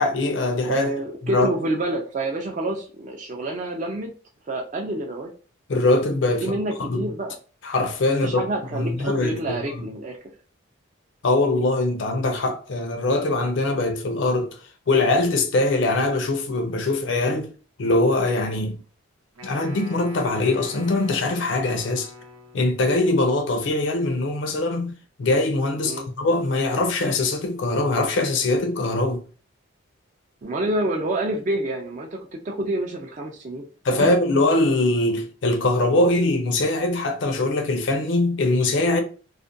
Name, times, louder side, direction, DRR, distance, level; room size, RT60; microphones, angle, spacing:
voice 1, 0.0-0.9 1.3-1.5 5.7-7.1 7.6-8.4 8.7-9.8 11.2-14.6 14.9-17.5 17.8-18.8 19.4-22.1 22.5-24.9 25.2-29.2 33.8-39.0, left 2 dB, 60° left, 0.5 m, -22 dB
voice 2, 0.7-4.1 4.5-5.3 6.4-7.3 8.2-10.2 25.8-26.1 30.4-33.7 34.0-34.1, right 1 dB, 35° right, 0.3 m, -28 dB
Wind instrument woodwind instrument, 19.3-22.8, left 1 dB, 90° right, 0.7 m, -43 dB
2.4 x 2.1 x 2.5 m
head